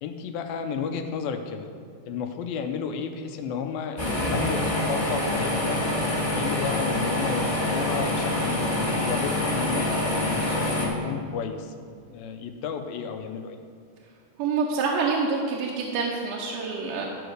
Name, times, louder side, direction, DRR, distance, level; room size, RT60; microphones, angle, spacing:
voice 1, 0.0-1.7 2.1-5.8 6.3-11.7 12.1-13.6, left 6 dB, 80° left, 6 dB, 2.4 m, -32 dB
sound 1, 4.0-10.9, left 1 dB, 15° left, 0.8 m, -26 dB
voice 2, 14.4-17.1, right 4 dB, 70° right, -2 dB, 2.2 m, -26 dB
13.0 x 4.8 x 6.4 m, 2.3 s
omnidirectional pair, 4.3 m